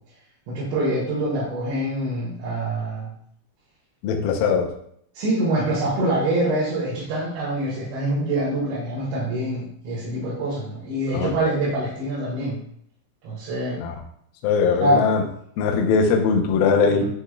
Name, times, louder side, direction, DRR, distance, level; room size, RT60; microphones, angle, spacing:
voice 1, 0.5-3.1 5.1-12.6 13.2-13.8 14.8-15.1 16.9-17.0, right 1 dB, 75° right, -8 dB, 4.0 m, -25 dB
voice 2, 4.0-4.7 11.1-11.3 13.8-13.9 14.4-15.2 15.6-17.0, left 5 dB, 85° left, 2 dB, 2.1 m, -20 dB
10.5 x 5.8 x 2.3 m, 0.67 s
omnidirectional pair, 5.3 m